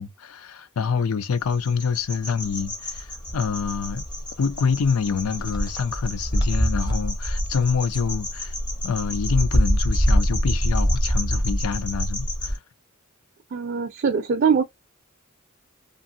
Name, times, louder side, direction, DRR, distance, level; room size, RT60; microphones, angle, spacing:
voice 1, 0.0-4.0 4.4-8.5 8.8-12.6, left 6 dB, 80° left, 0.4 m, -26 dB
sound 1, 1.5-12.6, equal, 20° left, 0.7 m, -25 dB
voice 2, 13.5-14.6, right 6 dB, 50° right, 0.4 m, -22 dB
2.6 x 2.6 x 2.6 m
head